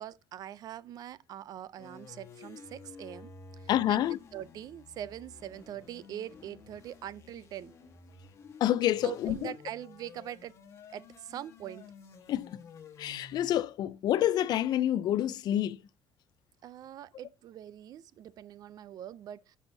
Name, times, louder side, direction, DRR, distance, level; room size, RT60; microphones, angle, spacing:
voice 1, 0.0-3.3 3.6-4.0 4.3-7.7 9.0-10.5 10.9-11.9 16.6-19.6, right 11 dB, 50° right, 0.4 m, -43 dB
sound 1, 1.8-13.6, left 4 dB, 35° left, 1.4 m, -52 dB
voice 2, 3.7-4.2 8.6-9.5 12.3-12.5 13.0-15.8, left 12 dB, 55° left, 0.4 m, -28 dB
10.5 x 6.2 x 2.7 m
cardioid pair, 175°, 9 cm